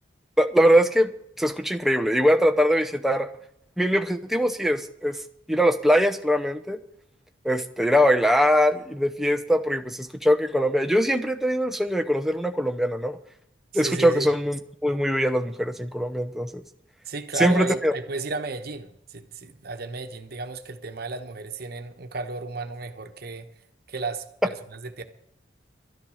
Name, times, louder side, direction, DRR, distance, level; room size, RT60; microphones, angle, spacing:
voice 1, 0.4-1.1 1.4-3.3 3.8-5.2 5.5-6.8 7.4-13.2 13.7-16.6 17.4-17.9, equal, ahead, 0.7 m, -22 dB
voice 2, 13.7-14.3 17.0-23.5 23.9-25.0, right 3 dB, 50° right, 1.1 m, -33 dB
12.5 x 10.5 x 6.4 m
head